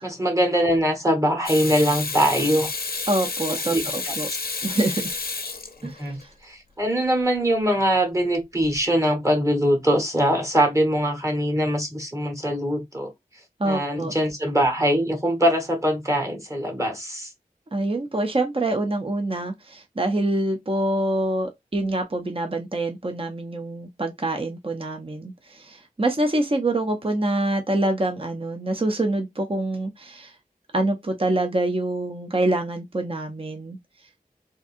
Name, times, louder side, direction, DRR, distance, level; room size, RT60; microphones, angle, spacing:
voice 1, 0.0-2.7 3.7-3.9 5.8-6.2 6.4-13.1 13.6-17.3, equal, 20° right, 1.3 m, -22 dB
Water tap faucet / Sink (filling or washing), 1.5-6.2 8.6-8.8, left 4 dB, 80° left, 0.6 m, -30 dB
voice 2, 3.1-4.3 4.6-5.2 5.8-6.3 13.6-14.1 17.7-30.3 30.7-33.8, right 2 dB, 35° right, 0.6 m, -25 dB
3.7 x 2.7 x 2.6 m
wide cardioid pair, 55°, 16 cm